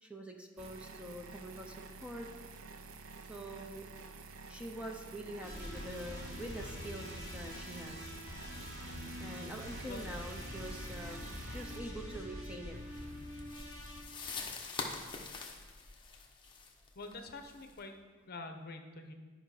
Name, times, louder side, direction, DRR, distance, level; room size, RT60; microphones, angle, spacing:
voice 1, 0.0-1.8 2.0-2.3 3.3-3.9 4.5-8.2 9.2-12.8, right 1 dB, 5° right, 2 dB, 0.6 m, -45 dB
sound 1, 0.6-11.8, right 3 dB, 75° right, 0.6 m, -50 dB
sound 2, 5.4-14.0, equal, 40° right, 2.3 m, -45 dB
sound 3, 12.9-17.8, left 4 dB, 25° left, 1.0 m, -44 dB
voice 2, 16.9-18.0 18.3-19.1, left 2 dB, 50° left, 6 dB, 0.8 m, -46 dB
11.5 x 5.4 x 4.8 m, 1.4 s
head